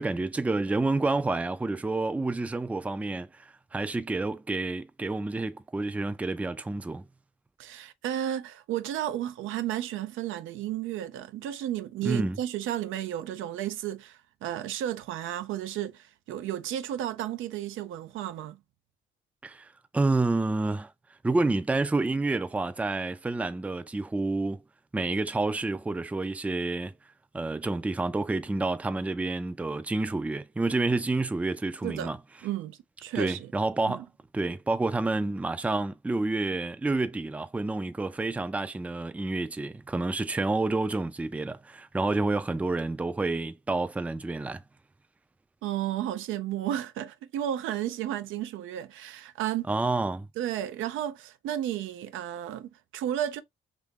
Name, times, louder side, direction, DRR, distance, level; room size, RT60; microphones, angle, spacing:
voice 1, 0.0-3.4 3.7-7.0 12.0-12.4 19.4-19.7 19.9-20.9 21.2-24.6 24.9-26.9 27.3-32.2 33.2-34.0 34.3-44.6 49.7-50.3, right 2 dB, 5° right, 0.3 m, -29 dB
voice 2, 7.6-18.6 31.8-32.1 32.4-33.5 33.9-34.0 45.6-49.7 50.4-53.4, right 11 dB, 80° right, 0.4 m, -33 dB
2.8 x 2.5 x 3.5 m
cardioid pair, 90°, 20 cm